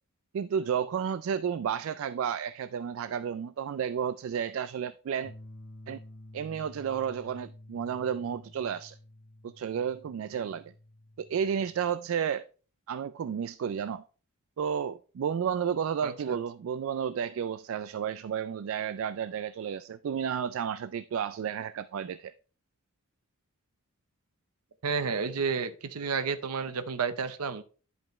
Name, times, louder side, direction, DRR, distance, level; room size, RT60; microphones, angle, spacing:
voice 1, 0.3-5.3 5.9-6.0 6.3-9.0 9.4-10.7 11.2-12.5 12.9-14.0 14.6-22.3, right 7 dB, 65° right, 0.3 m, -32 dB
sound 1, 5.2-11.9, left 1 dB, 75° left, 1.2 m, -51 dB
voice 2, 16.0-16.4 24.8-27.6, right 5 dB, 90° right, 0.7 m, -31 dB
10.5 x 5.4 x 3.1 m
head